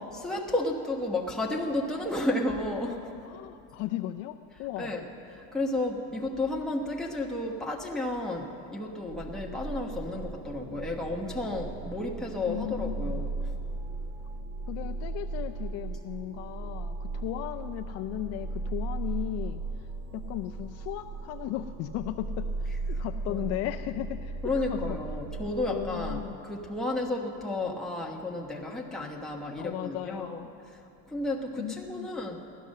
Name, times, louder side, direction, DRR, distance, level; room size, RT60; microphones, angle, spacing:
voice 1, 0.0-3.3 4.5-13.5 22.7-23.5 23.9-24.0 24.4-32.4, left 2 dB, ahead, -2 dB, 1.2 m, -33 dB
voice 2, 3.2-5.0 12.5-13.2 14.7-19.9 20.1-25.0 25.7-26.4 29.6-30.5 31.6-32.1, left 14 dB, 50° left, 6 dB, 0.4 m, -36 dB
sound 1, 9.1-26.2, right 3 dB, 70° right, 2.0 m, -36 dB
15.0 x 12.0 x 6.5 m, 2.6 s
cardioid pair, 160°, 33 cm